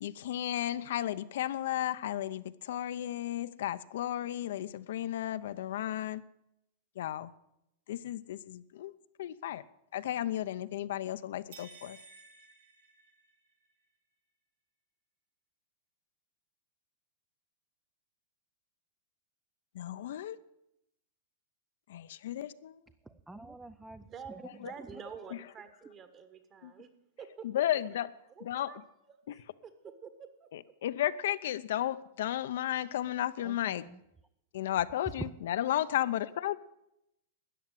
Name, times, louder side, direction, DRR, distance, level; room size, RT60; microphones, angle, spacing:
voice 1, 0.0-6.2 7.0-7.3 7.9-8.9 9.2-9.6 9.9-12.0 19.7-20.4 21.9-22.8 24.6-24.7 26.6-26.7 27.4-28.1 28.4-28.7 29.3-29.4 30.5-33.8 34.5-36.6, left 12 dB, 70° left, 12 dB, 0.7 m, -34 dB
sound 1, 11.5-13.7, right 3 dB, 85° right, 2.9 m, -54 dB
voice 2, 23.1-24.4 24.9-25.0 33.4-34.0, right 2 dB, 5° right, 11 dB, 0.5 m, -50 dB
voice 3, 24.0-26.9 27.2-27.5 28.4-28.8 29.3-30.5, right 6 dB, 25° right, 10 dB, 1.5 m, -48 dB
13.5 x 9.2 x 9.1 m, 0.82 s
supercardioid pair, 145°, 0 cm